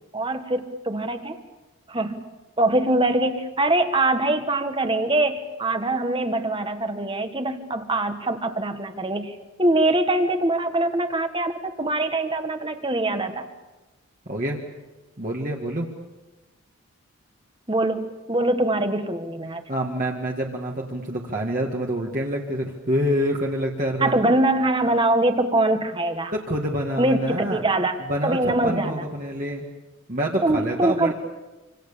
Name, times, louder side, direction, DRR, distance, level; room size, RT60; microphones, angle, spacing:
voice 1, 0.1-1.4 1.9-2.3 2.6-13.5 17.7-19.6 24.0-26.3 27.0-29.1 30.4-31.1, right 2 dB, 25° right, 8 dB, 1.6 m, -23 dB
voice 2, 14.3-14.6 15.2-15.9 19.7-24.1 26.3-27.6 28.1-29.7 30.1-31.1, equal, 40° right, -1 dB, 2.1 m, -27 dB
26.5 x 26.5 x 7.0 m, 1.1 s
head